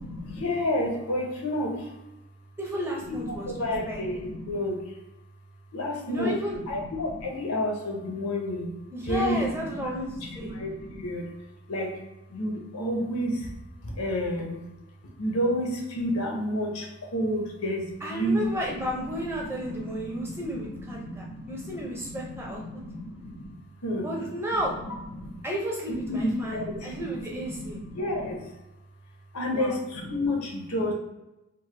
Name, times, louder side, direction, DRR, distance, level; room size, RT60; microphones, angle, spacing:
voice 1, 0.0-1.9 3.1-4.9 5.7-8.7 9.0-11.2 11.7-12.0 12.3-13.5 13.8-14.6 15.2-23.5 23.8-24.1 24.6-25.3 25.9-28.4 29.3-30.9, left 1 dB, 90° left, 0 dB, 0.8 m, -31 dB
voice 2, 2.6-4.0 6.1-6.6 8.9-10.1 10.3-10.5 18.0-22.8 24.0-24.7 25.4-27.8 29.5-29.8, equal, 10° right, -2 dB, 0.5 m, -33 dB
3.2 x 2.1 x 3.2 m, 0.95 s
head